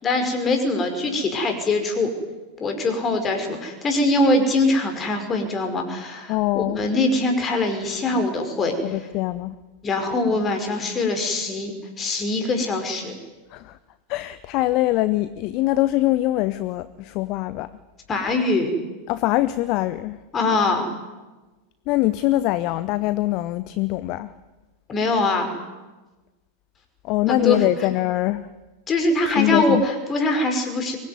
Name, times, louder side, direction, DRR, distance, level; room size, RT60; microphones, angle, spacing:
voice 1, 0.0-2.1 2.6-8.9 9.8-13.1 18.1-18.7 20.3-20.9 24.9-25.5 27.3-27.7 28.9-31.0, left 2 dB, 20° left, 5 dB, 5.3 m, -22 dB
voice 2, 6.3-6.8 8.8-9.5 13.5-13.8 14.1-17.7 19.1-20.2 21.9-24.3 27.0-28.5 29.3-29.8, left 17 dB, 40° left, 16 dB, 0.8 m, -23 dB
24.0 x 20.5 x 9.6 m, 1.2 s
figure-of-eight pair, 90°, 0 cm